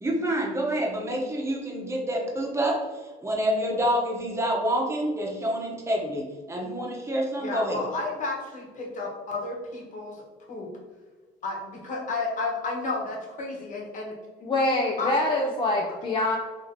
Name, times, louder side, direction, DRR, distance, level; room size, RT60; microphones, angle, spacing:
voice 1, 0.0-7.8, right 1 dB, 15° right, -2 dB, 0.9 m, -27 dB
voice 2, 7.4-10.2 10.5-10.7 11.4-14.1 15.0-15.2, left 3 dB, 50° left, -1 dB, 1.2 m, -32 dB
voice 3, 14.4-16.4, left 2 dB, 30° left, -1 dB, 0.5 m, -25 dB
2.9 x 2.8 x 3.9 m, 1.4 s
cardioid pair, 110°, 17 cm